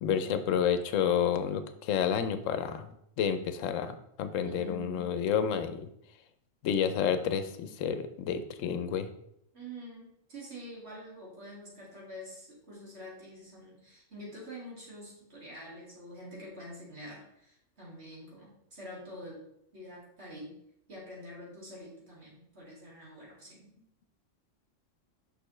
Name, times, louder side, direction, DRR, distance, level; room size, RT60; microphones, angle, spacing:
voice 1, 0.0-2.9 3.2-5.9 6.6-9.1, left 8 dB, 85° left, 10 dB, 1.0 m, -30 dB
voice 2, 4.4-5.1 9.5-19.4 19.7-20.5 20.9-23.7, equal, 55° right, -6 dB, 2.6 m, -46 dB
6.4 x 5.5 x 3.1 m, 0.76 s
omnidirectional pair, 1.3 m